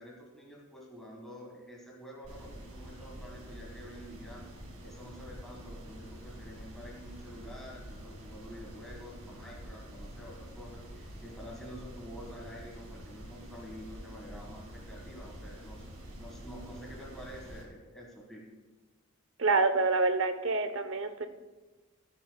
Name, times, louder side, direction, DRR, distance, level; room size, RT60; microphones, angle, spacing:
voice 1, 0.0-4.4 4.8-15.8 16.2-18.4, equal, ahead, -3 dB, 1.6 m, -48 dB
Rain - Rpg, 2.2-17.6, equal, 85° right, 2.4 m, -47 dB
voice 2, 19.4-21.3, right 3 dB, 65° right, 9 dB, 0.7 m, -27 dB
15.0 x 10.0 x 2.3 m, 1.2 s
head